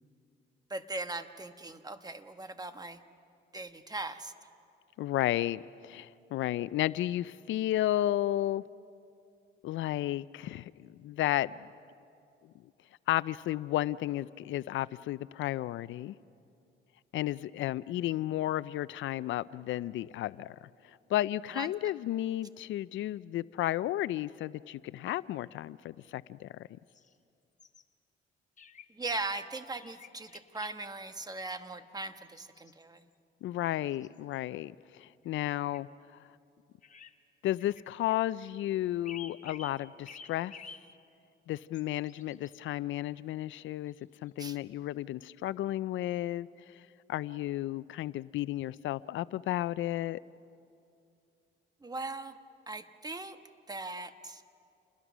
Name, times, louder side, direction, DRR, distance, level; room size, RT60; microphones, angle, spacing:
voice 1, 0.7-3.0 3.5-4.3 21.5-21.7 28.9-33.1 44.4-44.6 51.8-52.3 52.7-53.4 53.7-54.4, right 2 dB, 20° right, 9 dB, 1.2 m, -39 dB
voice 2, 5.0-8.6 9.6-11.5 13.1-16.1 17.1-20.7 21.1-26.5 33.4-35.9 37.4-40.5 41.5-43.9 44.2-46.5 47.1-50.2, left 14 dB, 75° left, 17 dB, 0.5 m, -33 dB
sound 1, 26.9-27.1 27.6-27.8 28.6-29.5 29.8-30.7 32.2-33.1 33.7-34.4 35.2-35.5 35.7-35.8 36.8-37.1 37.6-38.2 39.0-39.8 40.0-40.8 41.7-42.5 43.9-44.3, left 6 dB, 40° left, 1.2 m, -50 dB
28.5 x 20.5 x 6.1 m, 2.5 s
cardioid pair, 90°, 20 cm